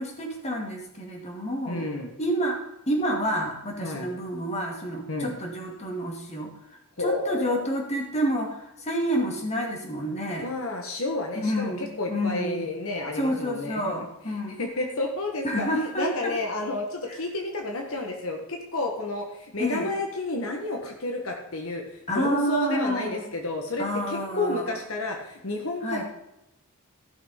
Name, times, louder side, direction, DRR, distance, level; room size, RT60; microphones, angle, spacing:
voice 1, 0.0-1.9 2.2-2.6 2.9-6.5 7.0-10.5 11.4-12.7 13.2-14.6 15.4-16.3 19.6-19.9 22.1-23.3 23.8-24.8 25.8-26.0, equal, 30° left, 1 dB, 2.4 m, -29 dB
voice 2, 1.7-2.1 3.8-4.1 5.1-5.4 7.0-7.7 10.4-14.0 14.6-26.0, left 2 dB, 65° left, 2 dB, 1.6 m, -31 dB
14.5 x 6.1 x 5.3 m, 0.86 s
head